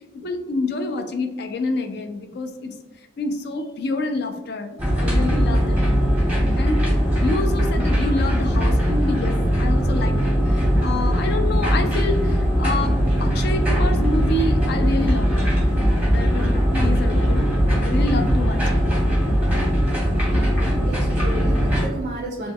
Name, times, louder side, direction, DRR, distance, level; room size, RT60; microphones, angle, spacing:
voice 1, 0.2-2.8 3.2-6.2 6.5-6.8 7.2-15.6 16.1-17.5 17.8-18.9, left 3 dB, 55° left, 6 dB, 0.3 m, -28 dB
sound 1, 4.8-21.9, equal, 5° right, 0.8 m, -20 dB
voice 2, 20.6-22.5, right 1 dB, 40° right, 0 dB, 0.4 m, -33 dB
3.2 x 2.0 x 3.4 m, 1.1 s
head